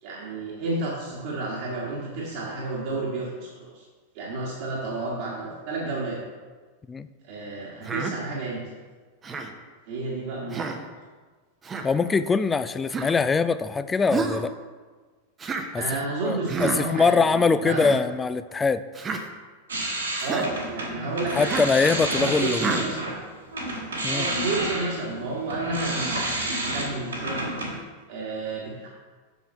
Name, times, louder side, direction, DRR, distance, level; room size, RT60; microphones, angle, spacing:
voice 1, 0.0-3.9 4.1-6.2 7.2-8.7 9.9-10.8 15.7-17.8 20.2-21.6 22.1-23.2 24.1-27.6 28.1-28.9, right 3 dB, 50° right, -5 dB, 1.5 m, -31 dB
Human voice, 7.8-8.1 9.2-9.5 10.5-10.8 11.6-11.9 12.9-13.2 14.1-14.4 15.4-15.7 16.5-16.8 17.6-18.0 18.9-19.2 20.2-20.5 21.5-21.8 22.6-22.9, right 4 dB, 20° right, 0.7 m, -29 dB
voice 2, 11.8-14.5 15.7-15.8 16.2-18.8 21.3-22.8 24.0-24.3, left 4 dB, 15° left, 13 dB, 0.3 m, -23 dB
sound 1, 19.7-23.2 23.5-27.8, right 1 dB, 75° right, 1.9 m, -30 dB
7.0 x 6.3 x 4.3 m, 1.4 s
figure-of-eight pair, 90°, 0 cm